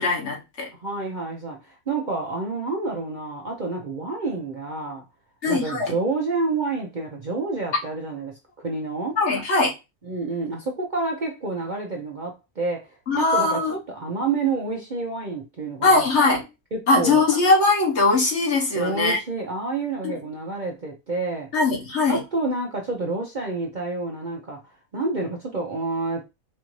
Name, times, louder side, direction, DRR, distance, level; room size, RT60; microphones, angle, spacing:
voice 1, 0.0-0.7 5.4-5.9 9.2-9.7 13.1-13.8 15.8-16.4 16.9-19.2 20.0-20.2 21.5-22.2, left 3 dB, 55° left, 1.3 m, -20 dB
voice 2, 0.8-5.0 5.5-9.2 10.1-12.9 13.1-16.1 16.7-17.2 18.7-21.5 22.1-24.6 24.9-26.3, right 3 dB, 45° right, 0.7 m, -29 dB
4.3 x 2.6 x 3.1 m
omnidirectional pair, 1.5 m